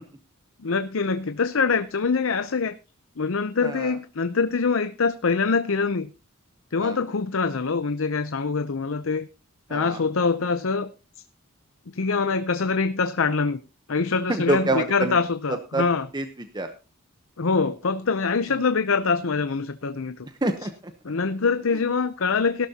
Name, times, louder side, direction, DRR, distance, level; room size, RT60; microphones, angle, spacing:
voice 1, 0.6-2.7 3.2-6.1 6.7-9.3 9.7-10.9 11.9-13.6 13.9-16.1 17.4-20.3 21.0-22.7, left 4 dB, 65° left, 11 dB, 0.7 m, -24 dB
voice 2, 3.6-4.0 6.8-7.0 9.7-10.0 14.3-15.2 15.7-15.8 16.1-16.7 18.5-18.6 20.4-20.9, right 2 dB, 20° right, 7 dB, 0.9 m, -27 dB
17.0 x 12.5 x 2.9 m, 0.30 s
head